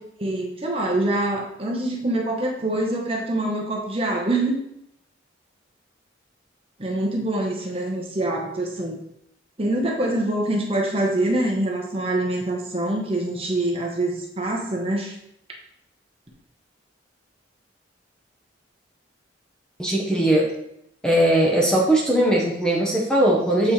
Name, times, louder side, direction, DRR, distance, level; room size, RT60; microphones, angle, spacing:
voice 1, 0.2-4.6 6.8-9.0 9.6-15.1, right 1 dB, 30° right, -1 dB, 1.0 m, -25 dB
voice 2, 19.8-20.5 21.0-23.7, right 1 dB, 5° left, -3 dB, 0.9 m, -19 dB
7.9 x 4.3 x 3.2 m, 0.76 s
head